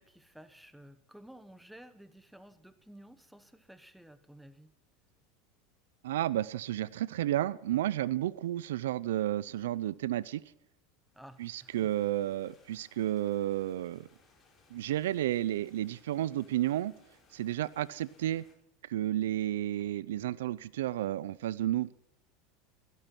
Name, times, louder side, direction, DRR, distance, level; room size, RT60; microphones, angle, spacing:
voice 1, 0.0-4.7 11.1-12.2, right 1 dB, ahead, 1.2 m, -54 dB
voice 2, 6.0-10.4 11.4-14.1 14.7-16.9 17.3-18.4 18.9-21.9, right 13 dB, 90° right, 0.5 m, -32 dB
sound 1, 11.0-18.5, left 3 dB, 20° left, 5.5 m, -66 dB
17.0 x 12.5 x 6.0 m
supercardioid pair, 120°, 0 cm